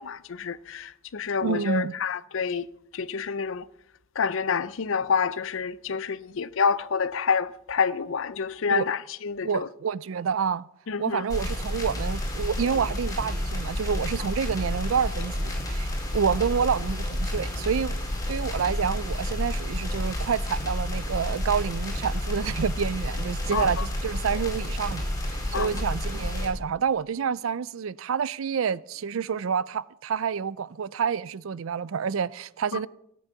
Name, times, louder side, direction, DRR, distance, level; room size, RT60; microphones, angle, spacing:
voice 1, 0.0-2.6 2.9-3.6 4.2-9.7 10.9-11.2 23.5-23.7 25.5-25.7, left 6 dB, 70° left, 0.5 m, -28 dB
voice 2, 1.4-2.0 8.7-8.9 9.4-10.7 11.0-18.0 18.3-32.9, right 6 dB, 75° right, 0.4 m, -28 dB
sound 1, 11.3-26.5, left 1 dB, 15° left, 4.7 m, -30 dB
17.5 x 8.4 x 7.2 m
head